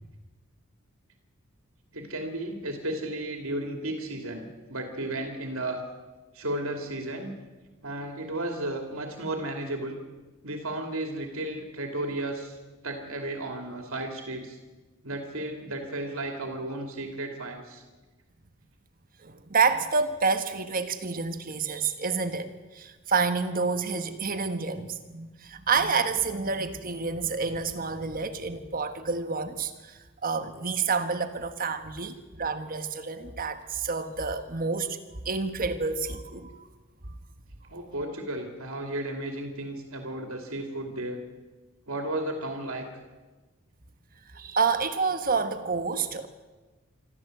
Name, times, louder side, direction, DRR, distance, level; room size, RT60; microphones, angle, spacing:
voice 1, 1.9-5.8 6.3-7.3 7.8-10.0 10.4-12.6 12.8-14.6 15.0-17.8 37.7-41.2 41.9-42.8, right 1 dB, 70° right, 3 dB, 2.7 m, -34 dB
voice 2, 19.2-35.0 35.2-36.5 44.3-46.3, right 4 dB, 40° right, 9 dB, 1.3 m, -28 dB
26.0 x 13.5 x 7.9 m, 1.2 s
head